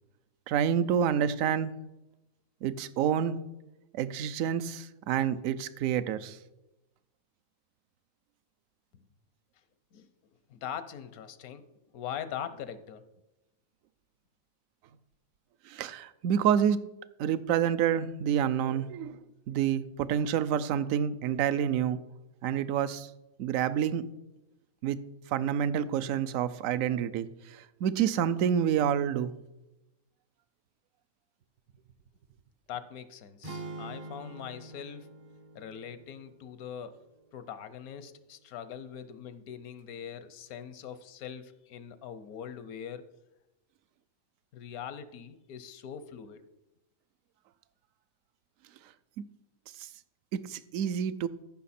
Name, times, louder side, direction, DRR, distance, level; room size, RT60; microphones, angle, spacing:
voice 1, 0.5-1.7 2.6-3.4 3.9-6.4 15.7-16.8 17.2-19.2 19.5-22.0 22.4-23.1 23.4-24.0 24.8-25.0 25.3-29.3 49.2-49.3 49.8-49.9 50.3-51.3, right 9 dB, 75° right, 15 dB, 1.0 m, -28 dB
voice 2, 10.5-11.7 11.9-13.0 32.7-35.1 35.5-37.0 37.3-43.0 44.5-46.4, left 8 dB, 90° left, 13 dB, 1.2 m, -42 dB
sound 1, 33.4-37.6, right 2 dB, 45° right, 0.4 m, -46 dB
14.0 x 5.8 x 4.2 m, 0.96 s
omnidirectional pair, 1.5 m